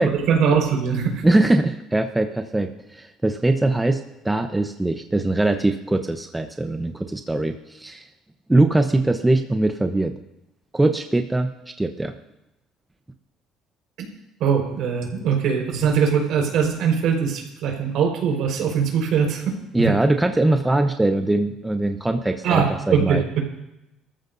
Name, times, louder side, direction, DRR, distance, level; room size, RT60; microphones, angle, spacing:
voice 1, 0.0-1.2 14.0-14.1 14.4-19.9 22.4-23.4, right 6 dB, 70° right, 1 dB, 4.7 m, -22 dB
voice 2, 1.2-8.1 8.5-10.1 10.7-11.5 11.8-12.1 19.7-23.2, right 2 dB, 10° right, 6 dB, 0.9 m, -21 dB
21.0 x 14.0 x 2.7 m, 0.90 s
supercardioid pair, 90°, 0 cm